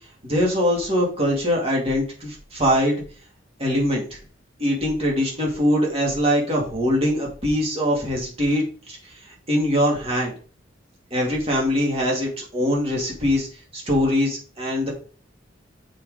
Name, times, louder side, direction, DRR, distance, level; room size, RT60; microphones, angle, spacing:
voice 1, 0.2-3.0 3.6-4.2 4.6-9.1 9.5-10.3 11.1-13.5 13.7-14.9, equal, 30° right, -2 dB, 2.4 m, -22 dB
6.8 x 5.0 x 3.8 m, 0.40 s
head